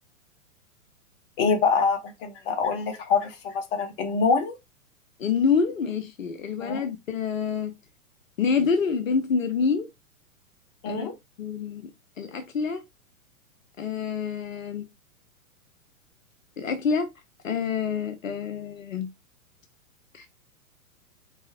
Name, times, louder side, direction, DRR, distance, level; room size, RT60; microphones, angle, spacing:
voice 1, 1.4-4.6 6.6-6.9 10.8-11.1, left 5 dB, 40° left, 1.1 m, -25 dB
voice 2, 5.2-7.7 8.4-9.9 10.9-11.1 11.4-11.9 12.2-12.8 13.8-14.9 16.6-17.1 17.4-19.1 20.1-20.3, left 5 dB, 65° left, 0.8 m, -27 dB
4.6 x 4.1 x 2.8 m
figure-of-eight pair, 110°, 43 cm